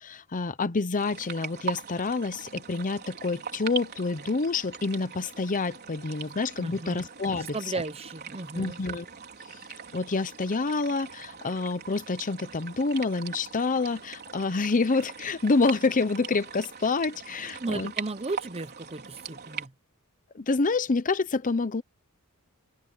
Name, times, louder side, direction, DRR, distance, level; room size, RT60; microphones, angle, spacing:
voice 1, 0.0-7.6 8.6-9.1 9.9-17.9 20.3-21.8, left 3 dB, 35° left, 0.7 m, -27 dB
sound 1, 1.0-19.7, right 7 dB, 45° right, 4.3 m, -41 dB
voice 2, 6.6-7.0 7.3-8.8 17.6-19.7, right 3 dB, 25° right, 0.9 m, -35 dB
open air
head